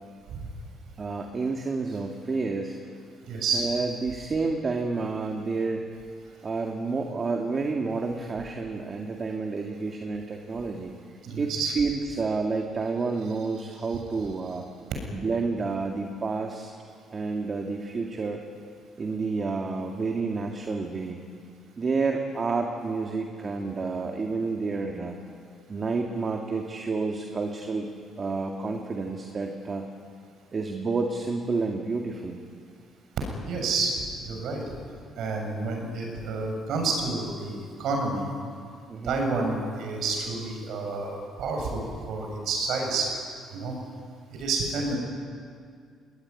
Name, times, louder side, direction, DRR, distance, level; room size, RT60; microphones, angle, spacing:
voice 1, 1.0-2.8 3.5-5.8 6.4-10.9 11.4-14.7 15.1-16.7 17.1-18.4 19.0-21.3 21.8-25.2 25.7-27.9 28.2-29.9 30.5-32.4 38.9-39.2, right 4 dB, 35° right, 2 dB, 2.2 m, -29 dB
voice 2, 3.2-3.7 11.2-11.7 33.4-33.9 34.3-34.6 35.2-38.3 39.0-43.1 43.5-43.7 44.3-45.0, right 3 dB, 70° right, 2 dB, 7.2 m, -29 dB
22.5 x 19.0 x 9.8 m, 2.2 s
cardioid pair, 95°, 0 cm